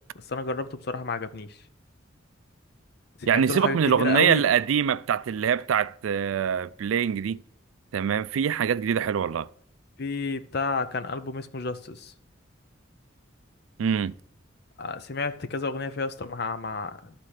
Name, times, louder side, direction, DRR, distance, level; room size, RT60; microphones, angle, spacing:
voice 1, 0.3-1.6 3.2-4.4 10.0-12.1 14.8-17.1, left 4 dB, 55° left, 0.7 m, -31 dB
voice 2, 3.3-7.4 7.9-9.5 13.8-14.1, right 8 dB, 90° right, 0.4 m, -24 dB
11.5 x 4.3 x 6.4 m
head